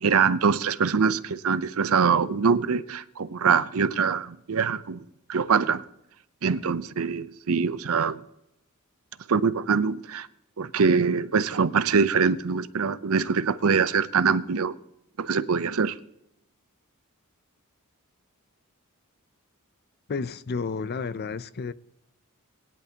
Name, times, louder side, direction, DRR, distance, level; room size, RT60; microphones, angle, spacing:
voice 1, 0.0-5.8 6.4-8.2 9.3-10.3 10.6-14.8 15.2-16.0, right 5 dB, 75° right, 0.6 m, -24 dB
voice 2, 20.1-21.7, left 4 dB, 50° left, 0.5 m, -31 dB
20.5 x 10.5 x 2.9 m
head